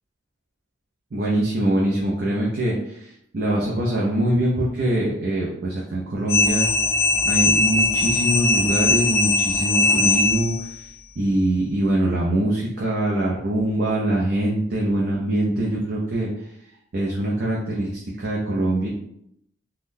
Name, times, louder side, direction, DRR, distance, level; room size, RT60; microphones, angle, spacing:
voice 1, 1.1-6.7 7.2-10.7 11.2-16.3 16.9-17.9 18.2-18.9, right 1 dB, 55° right, -4 dB, 0.5 m, -23 dB
sound 1, 6.3-10.8, left 3 dB, 15° left, 0.4 m, -20 dB
3.6 x 2.3 x 2.6 m, 0.75 s
head